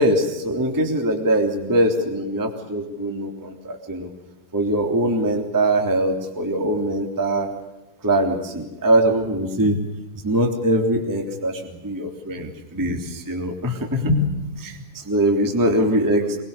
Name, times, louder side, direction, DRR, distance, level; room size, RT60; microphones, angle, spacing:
voice 1, 0.0-4.1 4.5-7.5 8.0-9.8 10.2-16.4, right 1 dB, 5° right, 3 dB, 1.9 m, -22 dB
24.0 x 23.0 x 6.9 m, 1.0 s
omnidirectional pair, 5.9 m